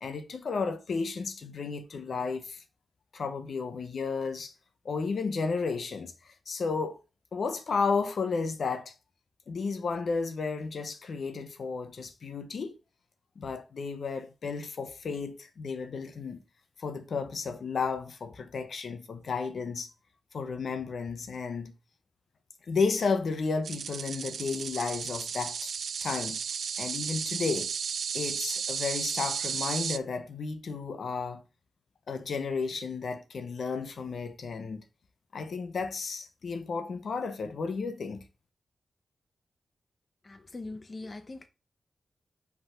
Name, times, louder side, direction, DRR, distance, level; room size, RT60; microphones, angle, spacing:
voice 1, 0.0-2.6 3.1-4.5 4.8-7.0 7.3-8.9 9.5-12.7 13.4-16.4 16.8-19.9 20.3-21.8 22.7-25.7 26.0-26.4 26.8-27.7 28.1-31.4 32.1-34.8 35.3-38.2, left 4 dB, 70° left, 0.9 m, -33 dB
sound 1, 23.6-30.0, right 7 dB, 85° right, 0.4 m, -34 dB
voice 2, 40.2-41.5, left 2 dB, 35° left, 0.8 m, -41 dB
5.5 x 4.0 x 5.7 m
wide cardioid pair, 110°, 0 cm